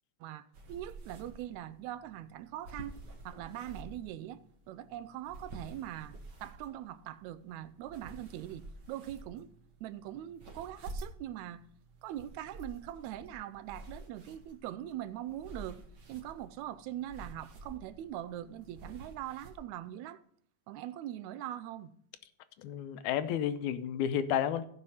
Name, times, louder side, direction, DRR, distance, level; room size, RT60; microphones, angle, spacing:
voice 1, 0.2-3.0 3.3-4.4 4.7-8.6 8.9-9.5 9.8-11.6 12.0-15.8 16.1-20.2 20.7-21.9, right 12 dB, 80° right, 1.9 m, -42 dB
sound 1, 0.5-19.6, right 2 dB, 55° right, 1.3 m, -50 dB
voice 2, 22.6-24.7, left 9 dB, 85° left, 2.1 m, -31 dB
15.5 x 5.4 x 5.5 m
omnidirectional pair, 3.3 m